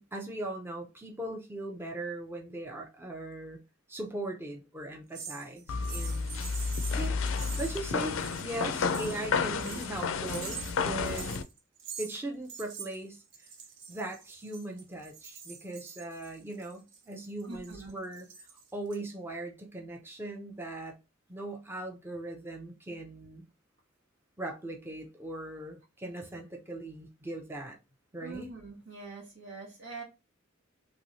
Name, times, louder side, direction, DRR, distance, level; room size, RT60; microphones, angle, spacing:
voice 1, 0.0-3.6 3.9-6.5 7.0-7.1 7.6-11.3 12.0-13.2 13.9-21.0 21.3-23.4 24.4-27.8 28.1-28.5, right 1 dB, 10° right, 0.5 m, -39 dB
sound 1, 5.1-8.5 8.8-12.2 12.5-19.0, right 6 dB, 60° right, 0.7 m, -45 dB
sound 2, 5.7-11.4, left 5 dB, 70° left, 0.4 m, -31 dB
voice 2, 17.4-17.9 28.2-30.0, right 3 dB, 85° right, 1.5 m, -43 dB
3.0 x 3.0 x 2.6 m
head